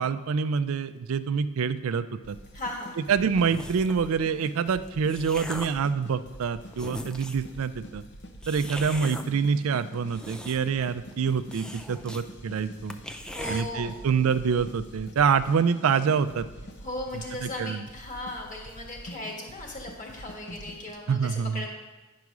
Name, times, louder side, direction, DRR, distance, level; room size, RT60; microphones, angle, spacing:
voice 1, 0.0-2.4 3.0-8.0 8.5-13.0 13.5-16.5 17.4-17.8 21.1-21.6, right 6 dB, 80° right, 12 dB, 0.4 m, -26 dB
sound 1, 2.2-20.9, equal, 55° left, 0.8 m, -46 dB
voice 2, 2.5-3.0 13.3-14.0 16.8-21.7, left 1 dB, 40° left, 0 dB, 1.8 m, -37 dB
sound 2, 3.4-4.0 4.7-5.9 6.4-6.5 6.7-7.5 8.4-9.2 9.9-10.8 11.1-11.2 11.5-12.2 12.6-12.7 12.9-13.6, left 1 dB, 5° left, 0.3 m, -39 dB
9.4 x 4.8 x 6.0 m, 1.2 s
head